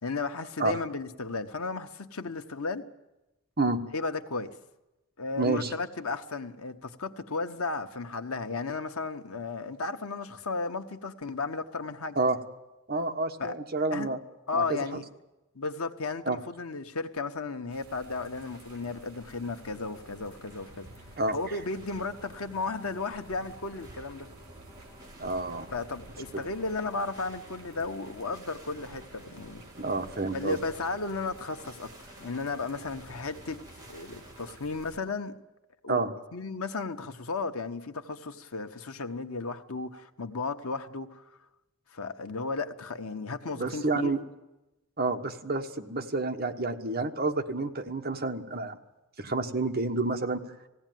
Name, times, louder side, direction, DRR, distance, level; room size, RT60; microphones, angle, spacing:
voice 1, 0.0-2.8 3.9-4.5 5.2-12.2 13.4-13.5 13.9-14.1 14.5-15.0 15.5-20.9 21.3-24.3 25.7-29.6 30.3-33.6 33.9-35.4 35.8-36.0 36.3-41.2 41.9-44.1, left 3 dB, 85° left, 1.1 m, -34 dB
voice 2, 5.4-5.7 12.1-12.4 12.9-14.2 14.5-15.0 16.2-16.4 21.2-21.4 25.2-25.7 26.3-26.4 29.8-30.6 35.9-36.1 43.6-44.2 45.0-48.8 49.2-50.4, right 3 dB, 45° right, 1.3 m, -29 dB
sound 1, 17.7-35.0, right 1 dB, 65° right, 4.1 m, -53 dB
sound 2, 17.8-34.6, right 1 dB, 15° right, 2.4 m, -52 dB
20.0 x 16.0 x 9.3 m
head